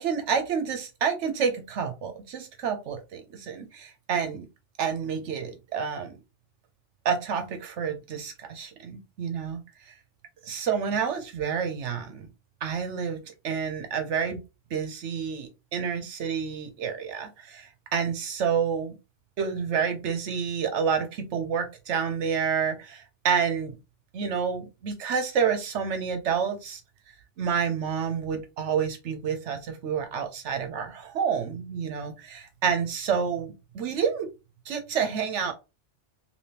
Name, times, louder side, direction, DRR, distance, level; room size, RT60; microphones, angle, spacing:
voice 1, 0.0-4.5 4.8-6.2 7.0-9.6 9.9-10.0 10.4-12.3 12.6-14.4 14.7-19.0 19.4-23.8 24.1-26.8 27.4-34.3 34.7-35.5, right 6 dB, 75° right, 6 dB, 0.9 m, -29 dB
3.4 x 2.8 x 2.8 m, 0.27 s
omnidirectional pair, 1.2 m